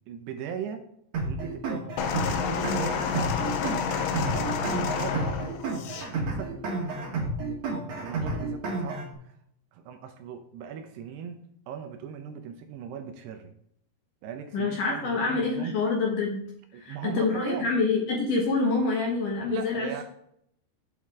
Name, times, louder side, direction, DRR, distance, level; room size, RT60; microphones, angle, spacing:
voice 1, 0.1-0.9 1.3-1.9 2.4-3.5 4.2-5.4 6.1-6.6 8.0-9.4 9.7-13.5 14.2-15.8 16.7-17.7 19.5-20.0, right 7 dB, 80° right, 6 dB, 2.6 m, -39 dB
sound 1, 1.1-9.1, right 2 dB, 55° right, 2.1 m, -31 dB
sound 2, 2.0-6.1 7.0-7.1, left 7 dB, 80° left, 2.4 m, -30 dB
voice 2, 14.5-16.4 16.7-20.0, left 3 dB, 65° left, -1 dB, 2.4 m, -26 dB
8.7 x 7.4 x 3.6 m, 0.71 s
omnidirectional pair, 5.1 m